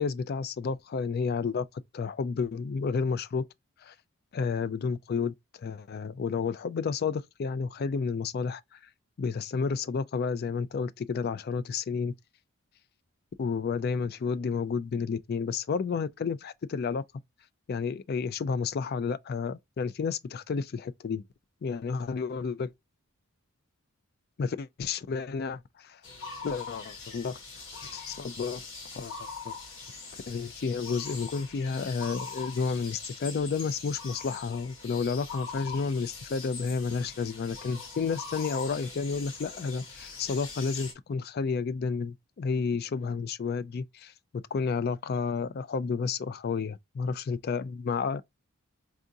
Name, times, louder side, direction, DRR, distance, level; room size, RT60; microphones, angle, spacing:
voice 1, 0.0-1.7 1.9-3.4 3.8-3.9 4.3-8.8 9.2-12.1 13.4-17.0 17.7-21.2 21.6-22.7 24.4-26.0 26.4-27.4 27.7-28.6 28.9-29.5 30.3-44.1 44.5-48.2, left 5 dB, 45° left, 0.3 m, -31 dB
sound 1, 26.0-40.9, left 4 dB, 60° left, 1.1 m, -42 dB
4.6 x 2.5 x 2.6 m
head